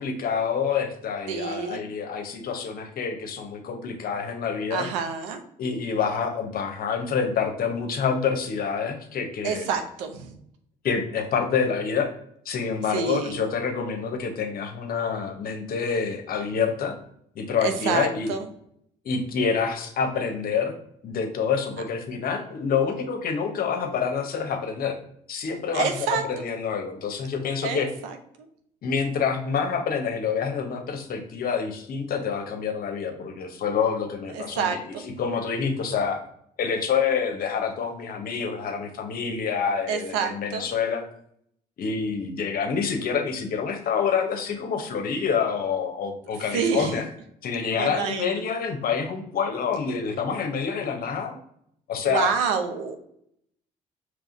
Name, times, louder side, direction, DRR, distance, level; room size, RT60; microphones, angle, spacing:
voice 1, 0.0-4.9 5.6-9.7 10.8-12.1 12.4-17.0 17.3-18.3 19.0-20.7 21.0-25.0 25.3-25.9 26.3-27.9 28.8-34.8 35.2-36.2 36.6-41.0 41.8-47.1 47.4-51.4 51.9-52.3, left 6 dB, 60° left, 6 dB, 0.8 m, -27 dB
voice 2, 1.3-1.8 4.7-5.4 9.4-10.4 12.9-13.4 17.6-18.5 25.7-26.4 27.6-28.5 34.3-35.1 39.9-40.7 46.5-47.0 47.7-48.4 52.0-53.0, right 6 dB, 85° right, 7 dB, 0.6 m, -28 dB
4.8 x 3.1 x 2.6 m, 0.70 s
hypercardioid pair, 60°, 18 cm